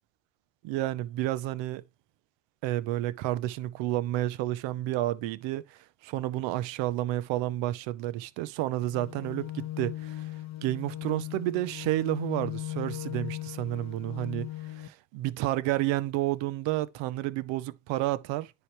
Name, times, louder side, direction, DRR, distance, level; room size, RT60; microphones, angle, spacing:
voice 1, 0.6-1.8 2.6-10.3 10.6-18.5, right 15 dB, 80° right, 0.8 m, -30 dB
sound 1, 8.9-14.9, left 14 dB, 40° left, 1.1 m, -38 dB
9.9 x 3.5 x 4.4 m
supercardioid pair, 85°, 44 cm